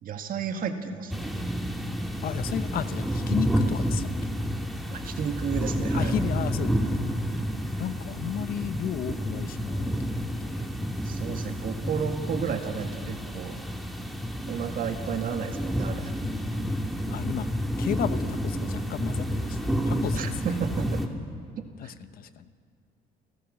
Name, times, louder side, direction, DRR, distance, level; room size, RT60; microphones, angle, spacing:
voice 1, 0.0-1.3 4.9-6.1 11.0-13.6 14.5-16.1 20.1-21.0 21.6-21.9, right 7 dB, 55° right, 6 dB, 1.9 m, -32 dB
sound 1, 1.1-21.1, equal, ahead, 2.1 m, -30 dB
voice 2, 2.2-4.1 5.9-6.8 7.8-10.7 16.2-17.5 17.8-20.6 21.8-22.5, left 10 dB, 60° left, 12 dB, 0.9 m, -34 dB
30.0 x 13.5 x 6.5 m, 2.3 s
cardioid pair, 110°, 17 cm